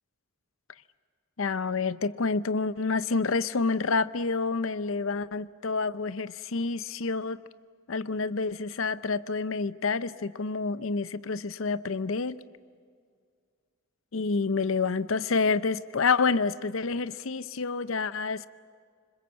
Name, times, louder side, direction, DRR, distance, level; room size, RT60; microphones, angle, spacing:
voice 1, 1.4-7.4 7.9-12.4 14.1-18.5, left 4 dB, 75° left, 15 dB, 0.7 m, -28 dB
26.0 x 25.5 x 7.7 m, 2.1 s
head